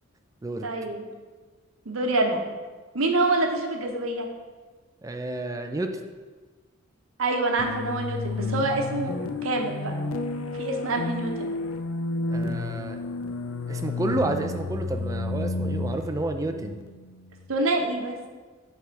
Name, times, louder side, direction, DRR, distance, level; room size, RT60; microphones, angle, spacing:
voice 1, 0.6-1.0 1.9-2.4 2.9-4.3 7.2-9.2 9.4-10.0 10.6-11.5 17.5-18.2, right 2 dB, 80° right, 2 dB, 0.9 m, -26 dB
voice 2, 5.0-5.9 12.3-13.0 13.7-16.8, right 2 dB, 15° right, 5 dB, 0.4 m, -30 dB
electric organ, 7.6-17.5, left 3 dB, 85° left, 0.4 m, -31 dB
7.4 x 3.4 x 4.6 m, 1.4 s
head